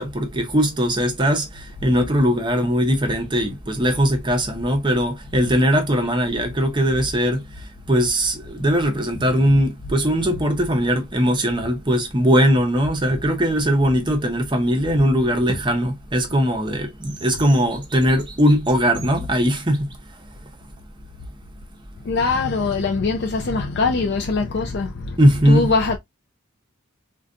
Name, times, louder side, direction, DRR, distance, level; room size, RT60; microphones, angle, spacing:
voice 1, 0.0-20.3 25.2-25.7, equal, 20° right, 0.6 m, -20 dB
voice 2, 22.1-25.2 25.5-26.0, left 4 dB, 50° left, 0.4 m, -22 dB
3.9 x 2.2 x 2.4 m
head